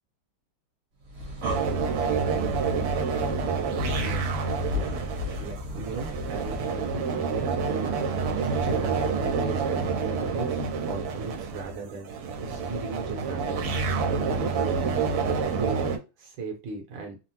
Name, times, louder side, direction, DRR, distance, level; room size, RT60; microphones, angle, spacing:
Breathing, 1.0-6.8, left 3 dB, 50° right, 1.0 m, -35 dB
sound 1, 1.4-16.0, right 5 dB, 90° right, 1.5 m, -28 dB
voice 1, 3.9-4.4 4.7-5.0 5.4-8.0 8.6-13.7 14.2-15.0 15.5-15.8 16.2-17.2, right 3 dB, 70° right, 3 dB, 1.3 m, -37 dB
3.6 x 2.0 x 2.7 m, 0.28 s
omnidirectional pair, 2.4 m